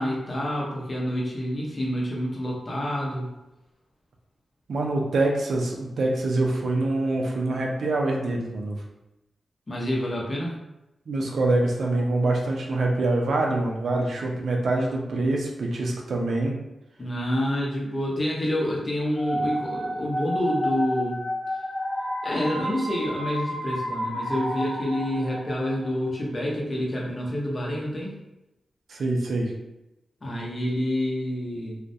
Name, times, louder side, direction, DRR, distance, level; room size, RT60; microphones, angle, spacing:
voice 1, 0.0-3.3 9.7-10.6 17.0-21.2 22.2-28.2 30.2-31.8, equal, 40° left, -3 dB, 0.7 m, -28 dB
voice 2, 4.7-8.8 11.1-16.6 28.9-29.5, right 2 dB, 75° right, 0 dB, 0.5 m, -25 dB
sound 1, 19.1-25.9, equal, 5° right, 1.0 m, -30 dB
2.3 x 2.1 x 2.6 m, 0.92 s
cardioid pair, 65°, 0 cm